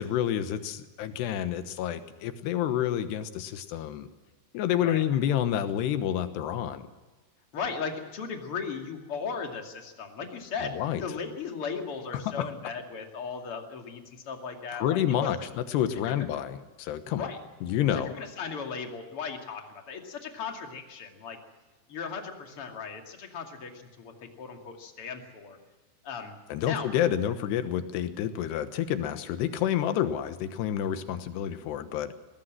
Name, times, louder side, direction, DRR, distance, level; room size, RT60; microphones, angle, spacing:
voice 1, 0.0-4.1 4.5-6.9 10.8-11.0 12.1-12.5 14.7-17.3 17.6-18.1 26.5-32.1, left 10 dB, 90° left, 10 dB, 3.3 m, -29 dB
voice 2, 7.5-10.7 11.0-15.3 16.0-16.3 17.1-17.4 17.9-21.4 21.9-25.6 26.0-26.9, left 5 dB, 40° left, 3 dB, 2.7 m, -37 dB
21.0 x 18.0 x 7.6 m, 1.2 s
omnidirectional pair, 4.7 m